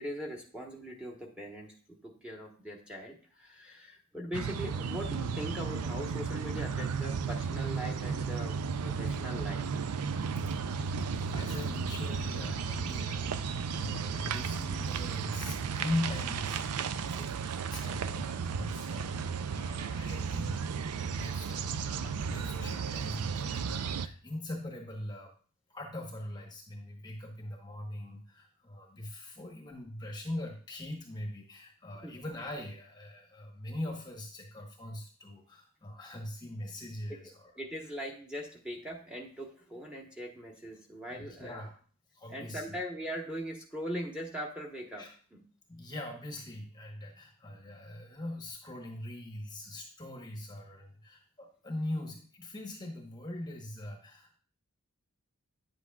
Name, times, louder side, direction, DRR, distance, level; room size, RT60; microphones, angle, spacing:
voice 1, 0.0-9.6 32.0-32.1 37.1-37.2 37.6-41.7 42.3-45.0 45.3-45.4, equal, 5° right, -1 dB, 1.2 m, -40 dB
sound 1, 4.3-24.1, right 5 dB, 85° right, 0.4 m, -34 dB
voice 2, 11.2-25.3 25.7-37.9 41.1-41.8 42.1-42.8 45.0-45.1 45.7-54.4, left 1 dB, 20° left, 1 dB, 1.0 m, -41 dB
9.7 x 7.8 x 2.3 m, 0.42 s
head